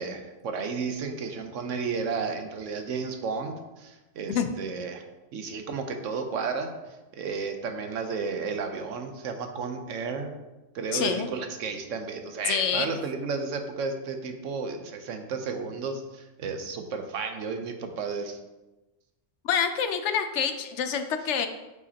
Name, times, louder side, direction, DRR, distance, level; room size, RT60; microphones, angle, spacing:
voice 1, 0.0-5.0 5.3-10.3 10.7-18.4, right 5 dB, 80° right, 5 dB, 1.1 m, -33 dB
voice 2, 10.9-11.3 12.4-12.9 19.4-21.5, left 7 dB, 70° left, 8 dB, 0.9 m, -27 dB
8.1 x 5.0 x 2.8 m, 1.1 s
omnidirectional pair, 1.3 m